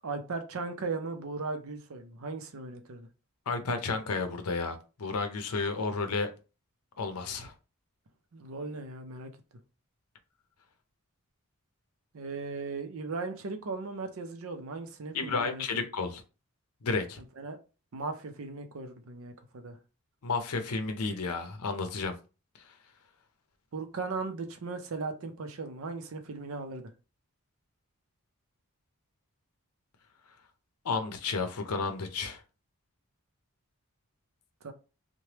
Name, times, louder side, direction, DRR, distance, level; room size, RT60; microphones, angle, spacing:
voice 1, 0.0-3.1 8.3-9.3 12.1-15.6 17.4-17.6 17.9-19.8 23.7-26.9 34.6-34.7, right 4 dB, 70° right, 0.5 m, -37 dB
voice 2, 3.5-6.3 7.0-7.5 15.1-16.2 16.8-17.2 20.2-22.1 30.8-32.4, left 4 dB, 85° left, 0.6 m, -32 dB
3.2 x 2.1 x 2.8 m
head